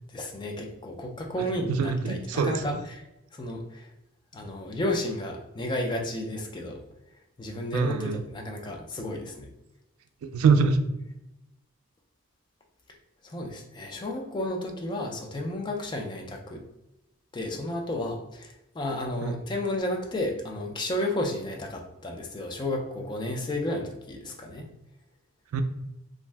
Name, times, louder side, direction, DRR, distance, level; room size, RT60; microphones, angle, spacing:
voice 1, 0.1-3.0 3.3-3.9 4.3-6.8 7.4-9.5 13.2-16.6 17.3-24.7, left 1 dB, 20° left, 1 dB, 0.4 m, -32 dB
voice 2, 1.4-2.8 7.7-8.2 10.2-10.8 19.2-19.4 25.5-25.6, right 5 dB, 85° right, 9 dB, 0.3 m, -25 dB
2.5 x 2.1 x 3.2 m, 0.91 s
head